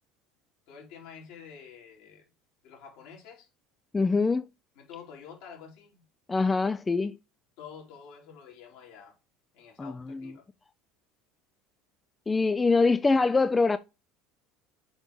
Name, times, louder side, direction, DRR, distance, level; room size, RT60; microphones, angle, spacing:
voice 1, 0.7-2.3 2.6-3.5 4.8-6.0 7.6-9.2 9.5-10.4, left 7 dB, 75° left, 3.5 m, -48 dB
voice 2, 3.9-4.5 6.3-7.2 9.8-10.3 12.3-13.8, left 3 dB, 20° left, 0.4 m, -24 dB
6.5 x 5.1 x 4.6 m
supercardioid pair, 90°, 0 cm